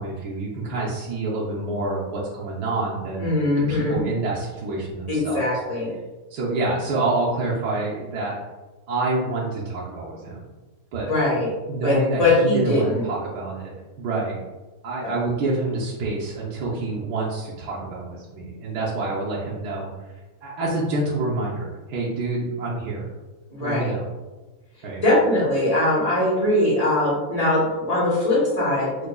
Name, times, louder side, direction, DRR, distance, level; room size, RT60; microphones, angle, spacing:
voice 1, 0.0-3.3 3.7-5.5 6.3-8.4 8.9-10.5 10.9-11.1 11.7-14.4 14.8-19.9 20.4-23.1 23.6-24.1 24.8-25.0, right 2 dB, 85° right, -5 dB, 1.2 m, -27 dB
voice 2, 3.2-4.0 5.1-5.9 11.1-11.5 11.8-13.0 15.0-15.1 23.5-23.9 25.0-29.1, left 2 dB, 25° left, -6 dB, 1.1 m, -21 dB
4.8 x 2.2 x 2.3 m, 1.2 s
omnidirectional pair, 1.7 m